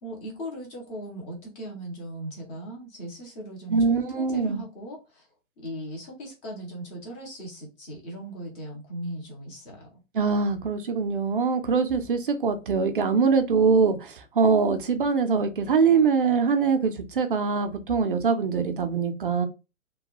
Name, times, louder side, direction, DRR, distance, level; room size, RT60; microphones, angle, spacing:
voice 1, 0.0-5.2 5.6-10.0, right 1 dB, 10° left, 0.6 m, -38 dB
voice 2, 3.7-4.6 10.1-19.5, right 5 dB, 40° right, 0.4 m, -23 dB
2.9 x 2.2 x 3.0 m
hypercardioid pair, 140°, 41 cm